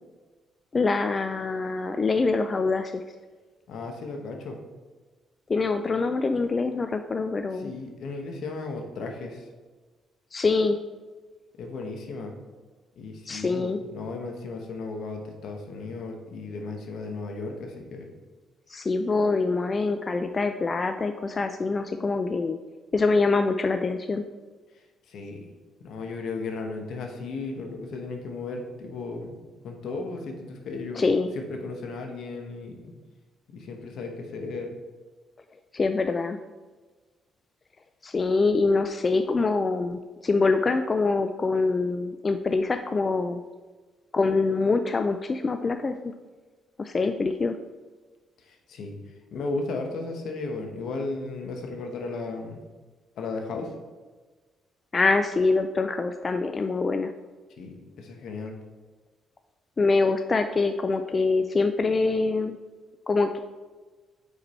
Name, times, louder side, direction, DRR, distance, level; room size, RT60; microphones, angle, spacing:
voice 1, 0.7-3.0 5.5-7.7 10.3-10.8 13.3-13.8 18.7-22.6 22.9-24.2 30.9-31.3 35.7-36.4 38.0-43.4 44.1-46.1 46.8-47.6 54.9-57.1 59.8-62.6 63.1-63.4, left 3 dB, 35° left, 7 dB, 0.3 m, -24 dB
voice 2, 3.7-4.6 7.5-9.5 11.6-12.3 13.0-18.1 25.1-25.5 25.8-29.4 29.6-32.9 33.5-34.7 48.5-49.0 49.3-52.6 53.2-53.7 57.6-58.5, left 3 dB, 75° left, 3 dB, 1.0 m, -35 dB
5.1 x 4.7 x 4.2 m, 1.3 s
cardioid pair, 90°, 0 cm